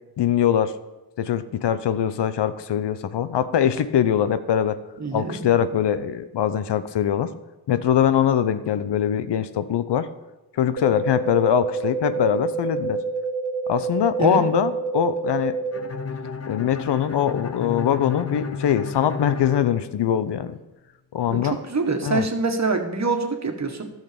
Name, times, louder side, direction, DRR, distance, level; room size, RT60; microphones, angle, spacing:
voice 1, 0.2-0.7 1.2-4.8 5.1-7.3 7.7-10.1 10.5-13.0 13.7-15.6 16.5-20.6 21.1-21.6 22.0-22.3, left 9 dB, 75° left, 13 dB, 0.7 m, -22 dB
voice 2, 5.0-5.5 14.2-14.4 21.3-23.9, right 3 dB, 40° right, 5 dB, 1.7 m, -25 dB
sound 1, 10.8-15.8, right 4 dB, 90° right, 1.3 m, -28 dB
Bowed string instrument, 15.7-20.5, left 5 dB, 35° left, 0.9 m, -33 dB
11.5 x 6.6 x 6.9 m, 1.1 s
cardioid pair, 50°, 42 cm